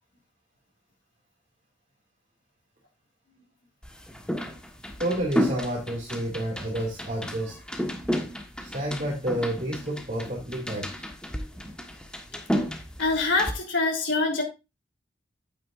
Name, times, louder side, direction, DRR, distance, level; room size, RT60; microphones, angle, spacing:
sound 1, 3.8-13.5, equal, 5° left, 1.3 m, -32 dB
voice 1, 5.0-7.6 8.6-10.9, right 1 dB, 40° right, -1 dB, 2.3 m, -30 dB
voice 2, 13.0-14.4, left 3 dB, 85° left, 1 dB, 3.3 m, -24 dB
9.4 x 9.3 x 2.5 m, 0.26 s
head